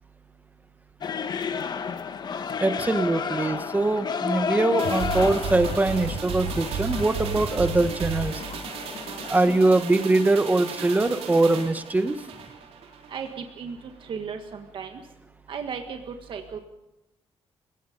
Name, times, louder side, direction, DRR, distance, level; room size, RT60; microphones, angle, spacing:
sound 1, 1.0-9.8, left 6 dB, 45° left, 1.1 m, -32 dB
voice 1, 2.6-8.3 9.3-12.1, right 2 dB, 15° right, 10 dB, 1.2 m, -22 dB
sound 2, 4.8-13.4 13.7-13.8, right 5 dB, 80° right, 4.2 m, -33 dB
voice 2, 13.1-15.0 15.5-16.6, right 6 dB, 55° right, 5 dB, 1.6 m, -35 dB
30.0 x 17.0 x 5.3 m, 0.90 s
cardioid pair, 140°, 10 cm